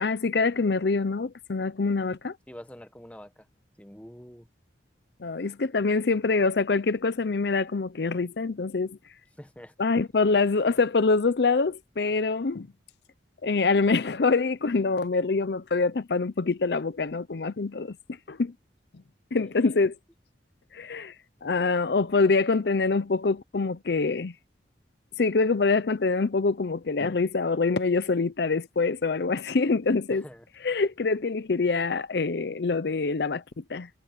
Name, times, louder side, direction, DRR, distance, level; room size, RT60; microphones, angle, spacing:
voice 1, 0.0-2.4 5.2-9.0 9.8-12.7 13.4-18.0 18.3-18.5 19.3-19.9 20.7-21.1 21.4-24.3 25.2-30.3 30.6-33.9, left 4 dB, 60° left, 0.6 m, -25 dB
voice 2, 2.5-3.3 3.8-4.5 9.4-9.7 19.3-19.5 30.1-30.4, equal, 5° left, 1.2 m, -45 dB
head